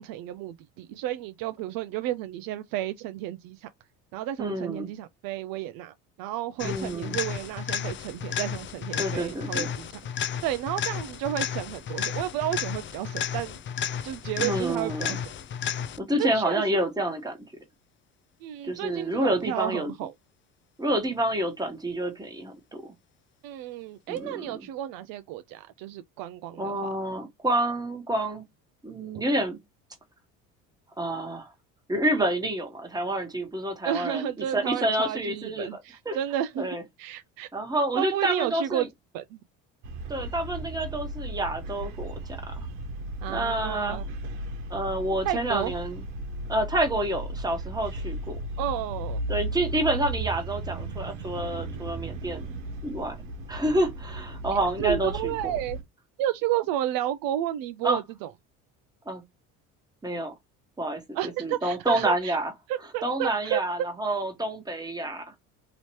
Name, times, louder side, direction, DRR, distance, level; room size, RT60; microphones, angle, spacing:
voice 1, 0.0-3.7 4.1-10.0 10.4-13.6 14.0-15.3 16.1-16.6 18.4-20.1 23.4-26.9 33.8-37.5 38.0-38.9 39.1-39.4 43.2-44.0 45.2-45.7 48.6-49.2 54.8-55.8 56.2-58.3 61.1-62.4 62.7-63.6, right 12 dB, 60° right, 0.5 m, -32 dB
voice 2, 4.4-4.9 6.6-7.2 9.0-9.7 14.4-15.2 16.0-17.4 18.6-19.9 20.8-22.9 24.1-24.6 26.6-28.4 28.8-29.6 31.0-31.5 31.9-35.8 36.0-36.2 36.6-36.8 37.5-38.9 40.1-42.7 43.3-44.0 44.7-46.0 46.5-48.4 49.3-52.5 52.8-53.2 53.5-55.5 57.8-58.0 59.1-59.2 60.0-60.3 60.8-62.5 63.0-65.2, right 1 dB, 10° right, 1.2 m, -28 dB
sound 1, 6.6-16.2 24.2-24.3, left 8 dB, 30° left, 0.4 m, -33 dB
sound 2, 39.8-55.8, right 1 dB, 75° right, 1.1 m, -35 dB
3.0 x 2.8 x 3.0 m
hypercardioid pair, 70°, 40 cm